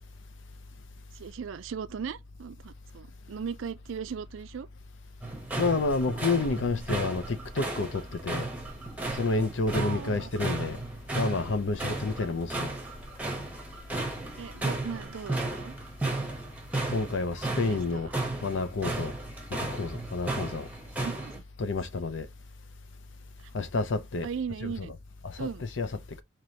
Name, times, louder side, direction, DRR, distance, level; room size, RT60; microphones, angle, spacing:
voice 1, 1.1-4.7 9.7-10.3 12.3-12.4 14.4-15.7 17.4-18.1 21.0-21.4 24.2-24.9 25.4-25.6, right 6 dB, 80° right, 0.4 m, -38 dB
sound 1, 5.2-21.4, right 2 dB, 10° right, 0.9 m, -34 dB
voice 2, 5.6-8.5 9.1-10.8 11.1-12.7 16.9-18.1 18.4-19.1 19.5-20.7 21.6-22.3 23.5-24.3 24.6-25.0 25.2-26.2, left 3 dB, 70° left, 0.6 m, -30 dB
4.7 x 2.9 x 2.8 m
head